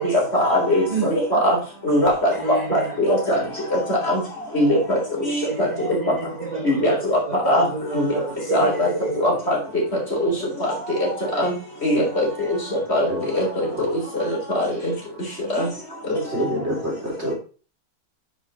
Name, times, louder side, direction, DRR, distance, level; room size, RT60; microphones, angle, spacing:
voice 1, 0.3-1.6 1.8-3.4 3.7-4.2 4.5-5.7 6.6-7.2 7.4-7.6 7.9-8.1 8.5-8.9 9.2-9.6 10.2-10.3 10.6-10.7 11.0-11.1 11.4-11.5 11.8-12.6 12.9-13.5 14.1-14.9 15.5-15.7 16.1-16.2, left 1 dB, 45° left, 4.1 m, -21 dB
voice 2, 2.3-3.0 5.5-9.3, right 4 dB, 30° right, 1.4 m, -30 dB
voice 3, 13.1-13.8 16.2-17.3, equal, 45° right, 3.7 m, -27 dB
9.9 x 5.8 x 4.2 m
omnidirectional pair, 1.5 m